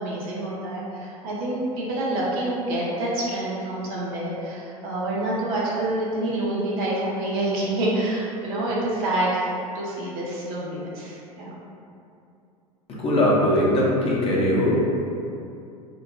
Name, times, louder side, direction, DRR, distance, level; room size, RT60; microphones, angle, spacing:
voice 1, 0.0-9.5 9.7-11.5, right 1 dB, 50° right, -5 dB, 0.7 m, -27 dB
voice 2, 13.0-14.7, left 1 dB, 30° left, -6 dB, 0.7 m, -20 dB
2.9 x 2.1 x 2.7 m, 2.6 s
hypercardioid pair, 80°, 19 cm